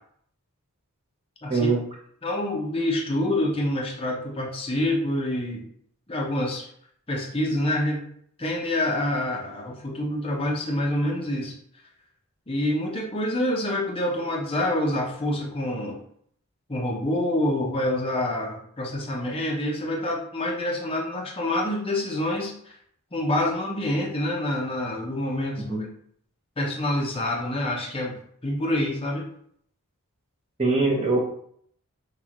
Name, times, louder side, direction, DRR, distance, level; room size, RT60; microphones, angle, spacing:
voice 1, 2.2-5.6 6.1-6.7 7.1-8.0 8.4-11.5 12.5-16.0 16.7-22.8 23.1-25.9 26.6-29.3, left 1 dB, 25° left, -2 dB, 0.8 m, -27 dB
voice 2, 30.6-31.2, right 3 dB, 30° right, -2 dB, 1.1 m, -22 dB
6.3 x 2.5 x 3.0 m, 0.64 s
head